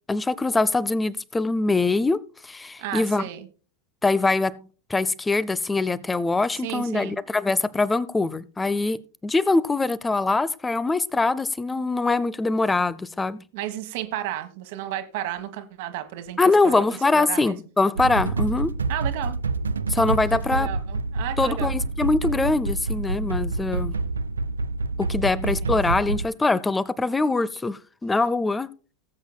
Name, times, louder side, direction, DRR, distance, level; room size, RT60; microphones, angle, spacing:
voice 1, 0.1-3.2 4.0-4.6 4.9-13.4 16.4-18.7 19.9-20.7 21.4-23.9 25.0-28.7, left 3 dB, 10° left, 0.6 m, -23 dB
voice 2, 2.8-3.5 6.5-7.2 13.5-16.4 16.6-16.8 17.1-17.6 18.9-19.4 20.2-21.7 25.2-25.8 26.1-26.3, right 12 dB, 50° right, 1.3 m, -33 dB
sound 1, 18.0-26.3, right 3 dB, 75° right, 0.4 m, -27 dB
19.0 x 8.1 x 2.2 m
figure-of-eight pair, 90°, 0 cm